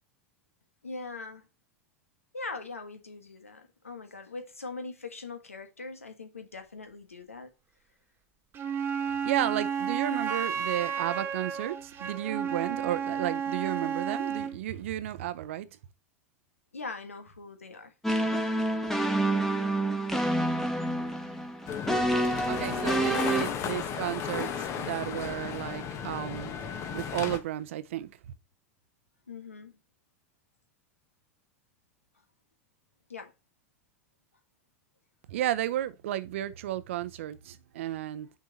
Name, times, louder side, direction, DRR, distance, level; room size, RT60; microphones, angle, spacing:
voice 1, 0.8-1.5 2.3-7.5 16.7-17.9 23.0-23.9 29.3-29.8 33.1-33.3, left 3 dB, 90° left, 1.4 m, -41 dB
Wind instrument woodwind instrument, 8.5-14.6, right 7 dB, 30° right, 1.3 m, -32 dB
voice 2, 9.1-15.7 22.5-28.2 35.3-38.4, right 13 dB, 65° right, 0.7 m, -33 dB
sound 1, 18.0-23.4, right 1 dB, 5° left, 1.3 m, -28 dB
sound 2, 21.7-27.4, left 7 dB, 40° left, 1.3 m, -35 dB
6.4 x 4.7 x 4.0 m
hypercardioid pair, 90°, 7 cm